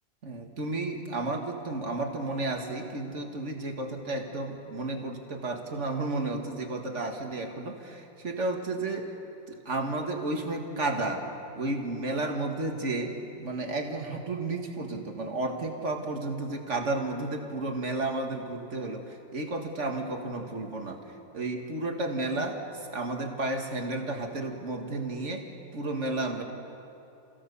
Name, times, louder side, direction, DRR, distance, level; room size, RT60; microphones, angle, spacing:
voice 1, 0.2-9.1 9.5-11.3 11.6-21.0 21.3-25.5 25.7-26.4, right 2 dB, 40° right, 3 dB, 2.0 m, -32 dB
28.5 x 16.0 x 7.0 m, 2.9 s
omnidirectional pair, 2.0 m